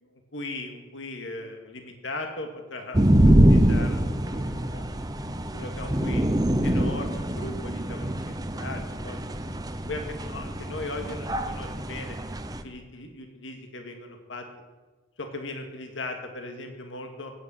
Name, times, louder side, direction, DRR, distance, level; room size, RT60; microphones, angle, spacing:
voice 1, 0.0-4.9 5.5-6.2 6.6-9.2 9.9-12.2 12.6-14.5 15.2-17.3, left 2 dB, 70° left, 4 dB, 2.2 m, -38 dB
sound 1, 2.9-12.6, right 1 dB, 20° right, 0.9 m, -24 dB
17.0 x 8.9 x 9.1 m, 1.3 s
head